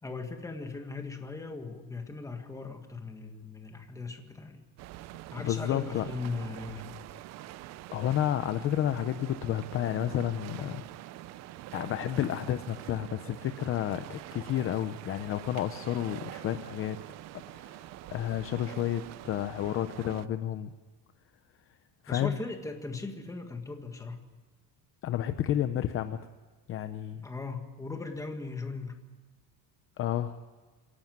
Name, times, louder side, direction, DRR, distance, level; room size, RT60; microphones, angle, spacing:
voice 1, 0.0-4.6 5.3-7.0 22.1-24.2 27.2-29.0, left 3 dB, 10° left, 5 dB, 1.7 m, -38 dB
sound 1, 4.8-20.3, right 15 dB, 45° right, 0.5 m, -45 dB
voice 2, 5.4-6.1 7.9-10.8 11.7-17.0 17.5-17.9 18.1-20.7 22.0-22.4 25.0-26.2 26.7-27.3 30.0-30.4, left 11 dB, 35° left, 10 dB, 0.7 m, -31 dB
26.0 x 11.5 x 9.3 m, 1.3 s
cardioid pair, 165°, 36 cm